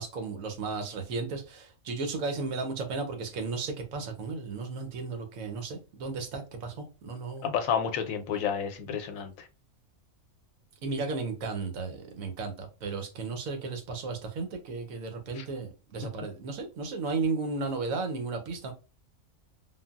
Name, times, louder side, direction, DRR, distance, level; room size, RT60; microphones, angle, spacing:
voice 1, 0.0-7.5 10.8-18.7, right 4 dB, 85° right, 1.1 m, -34 dB
voice 2, 7.4-9.5 15.4-15.5, left 7 dB, 80° left, 1.0 m, -30 dB
3.7 x 2.0 x 2.3 m
omnidirectional pair, 1.4 m